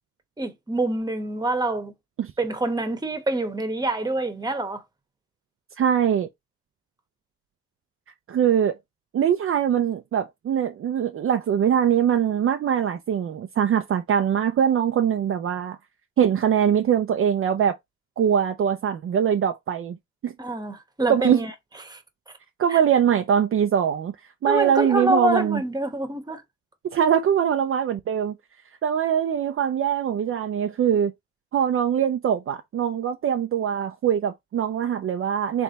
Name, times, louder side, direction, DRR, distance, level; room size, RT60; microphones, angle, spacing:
voice 1, 0.4-1.9 2.4-4.8 20.4-21.5 21.9-22.0 22.7-22.8 24.4-26.4, right 1 dB, 15° right, 1.1 m, -26 dB
voice 2, 5.8-6.3 8.3-8.8 9.1-15.8 16.2-17.8 18.2-20.0 20.2-20.3 21.1-21.4 22.6-24.1 24.4-25.6 26.9-28.3 28.8-31.1 31.5-35.6, right 8 dB, 45° right, 0.5 m, -22 dB
3.4 x 3.4 x 4.0 m
cardioid pair, 90°, 30 cm